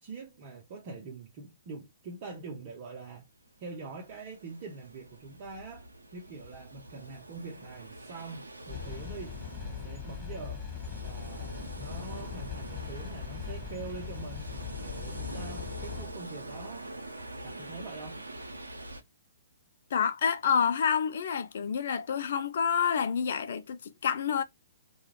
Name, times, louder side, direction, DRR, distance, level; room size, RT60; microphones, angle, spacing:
voice 1, 0.0-3.2 3.6-5.9 6.1-10.7 11.0-16.9 17.4-18.2, right 4 dB, 40° right, 0.7 m, -44 dB
sound 1, 3.6-19.0, right 1 dB, 90° right, 0.6 m, -45 dB
sound 2, 8.7-16.1, left 8 dB, 20° left, 1.2 m, -40 dB
voice 2, 19.9-24.4, left 7 dB, 60° left, 0.3 m, -28 dB
2.3 x 2.1 x 3.1 m
figure-of-eight pair, 125°, 0 cm